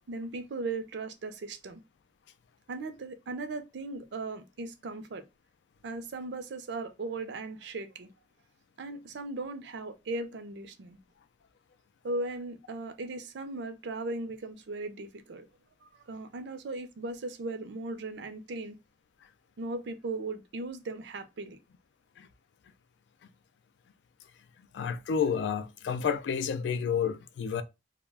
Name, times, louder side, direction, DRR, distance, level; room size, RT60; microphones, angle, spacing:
voice 1, 0.1-1.8 2.7-5.2 5.8-8.1 8.8-11.0 12.0-15.4 16.1-18.8 19.6-21.6, right 2 dB, 85° right, 0.5 m, -37 dB
voice 2, 24.7-27.6, left 7 dB, 90° left, 0.3 m, -30 dB
2.3 x 2.1 x 3.3 m
head